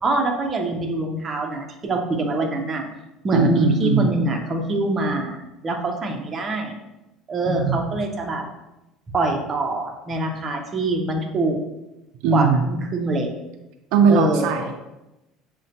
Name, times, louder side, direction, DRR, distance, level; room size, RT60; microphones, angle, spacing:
voice 1, 0.0-2.9 3.2-5.4 5.6-6.8 7.3-8.4 9.1-11.6 12.3-13.3 14.1-14.7, right 2 dB, 25° right, 1 dB, 0.6 m, -24 dB
voice 2, 3.3-4.1 7.4-7.8 12.2-12.6 13.9-14.7, right 5 dB, 70° right, 4 dB, 0.3 m, -19 dB
6.3 x 2.1 x 2.8 m, 0.96 s
cardioid pair, 140°, 0 cm